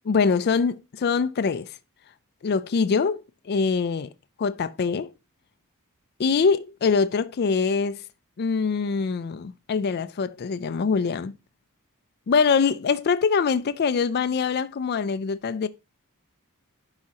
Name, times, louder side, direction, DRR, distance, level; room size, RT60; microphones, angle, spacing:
voice 1, 0.1-1.8 2.4-4.1 4.4-5.1 6.2-8.0 8.4-11.3 12.3-15.7, left 5 dB, 50° left, 0.4 m, -24 dB
11.5 x 4.9 x 2.8 m
head